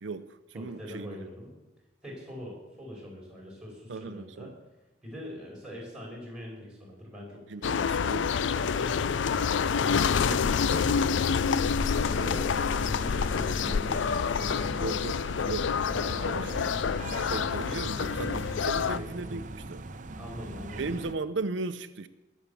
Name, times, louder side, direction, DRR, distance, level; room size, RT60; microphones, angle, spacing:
voice 1, 0.0-1.3 3.9-4.5 7.5-8.5 10.0-11.2 12.1-12.5 14.8-15.8 16.2-16.7 17.3-19.9 20.8-22.1, right 3 dB, 90° right, 0.7 m, -37 dB
voice 2, 0.5-1.5 2.0-4.5 5.0-7.4 8.5-10.6 12.0-12.5 12.8-14.8 15.9-16.7 18.7-19.4 20.2-20.9, left 1 dB, 5° right, 5.3 m, -43 dB
sound 1, 7.6-19.0, left 6 dB, 85° left, 0.4 m, -27 dB
sound 2, 12.0-21.1, right 2 dB, 45° right, 0.8 m, -40 dB
19.5 x 7.2 x 7.0 m
head